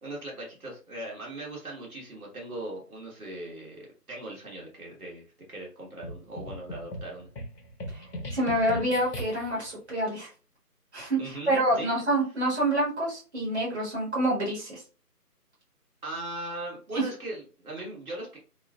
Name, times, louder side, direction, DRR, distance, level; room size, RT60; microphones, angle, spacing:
voice 1, 0.0-7.3 11.2-11.9 16.0-18.4, right 1 dB, 65° right, -3 dB, 1.3 m, -39 dB
sound 1, 6.0-9.7, equal, 90° left, 0.9 m, -39 dB
voice 2, 8.3-10.3 10.9-14.8, right 1 dB, 45° right, -5 dB, 1.3 m, -27 dB
3.0 x 2.4 x 2.2 m, 0.36 s
figure-of-eight pair, 160°, 48 cm